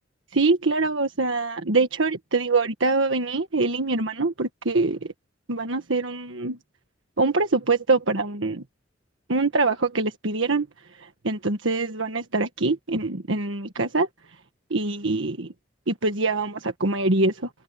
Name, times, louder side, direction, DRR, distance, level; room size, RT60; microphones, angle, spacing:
voice 1, 0.3-5.1 5.5-6.6 7.2-8.6 9.3-10.7 11.0-14.1 14.7-15.5 15.9-17.5, right 3 dB, 80° right, 1.5 m, -24 dB
head